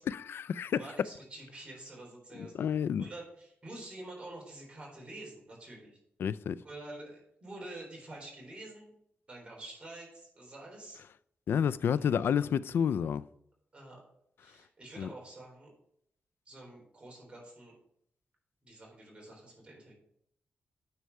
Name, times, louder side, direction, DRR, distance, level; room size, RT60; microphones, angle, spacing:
voice 1, 0.1-0.8 2.4-3.0 6.2-6.6 11.5-13.3 15.0-15.1, left 8 dB, 70° left, 0.3 m, -30 dB
voice 2, 0.7-2.5 3.0-6.0 6.6-8.9 9.3-11.0 12.0-12.3 13.7-14.0 14.4-15.7 16.5-17.7 18.6-19.9, right 2 dB, 30° right, 3.7 m, -47 dB
9.4 x 4.7 x 5.4 m
wide cardioid pair, 125°, 4 cm